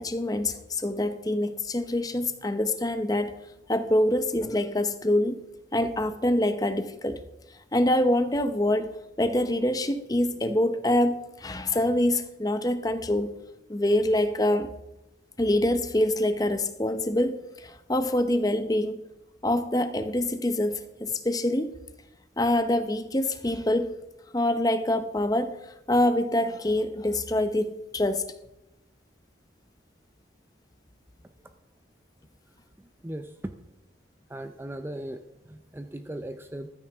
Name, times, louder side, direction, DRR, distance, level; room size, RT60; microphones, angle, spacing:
voice 1, 0.0-3.3 3.7-5.4 5.7-7.2 7.7-13.3 13.7-14.7 15.4-19.0 19.4-21.7 22.4-23.9 24.3-28.2, left 1 dB, 20° left, 9 dB, 0.7 m, -25 dB
voice 2, 33.0-33.5 34.3-36.7, right 1 dB, 10° right, 8 dB, 0.5 m, -38 dB
14.5 x 13.0 x 3.5 m, 0.93 s
head